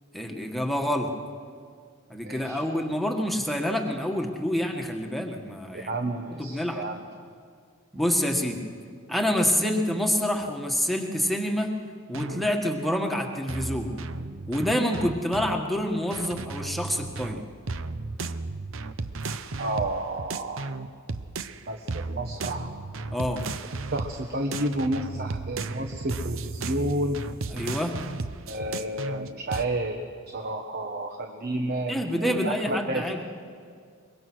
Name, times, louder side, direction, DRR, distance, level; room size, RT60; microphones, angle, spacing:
voice 1, 0.1-1.1 2.1-6.0 6.3-6.8 7.9-8.6 9.1-11.7 12.1-13.9 14.5-17.4 23.1-23.5 27.5-27.9 31.9-33.2, equal, ahead, 2 dB, 1.7 m, -27 dB
voice 2, 2.2-2.6 5.7-7.1 19.6-20.7 21.7-22.7 23.9-27.2 28.5-33.1, right 1 dB, 50° right, 4 dB, 1.2 m, -31 dB
sound 1, 12.1-12.5 13.5-15.6 16.1-21.6 21.9-24.2 24.5-29.7, right 3 dB, 65° right, 0.8 m, -34 dB
23.0 x 22.5 x 6.3 m, 2.1 s
head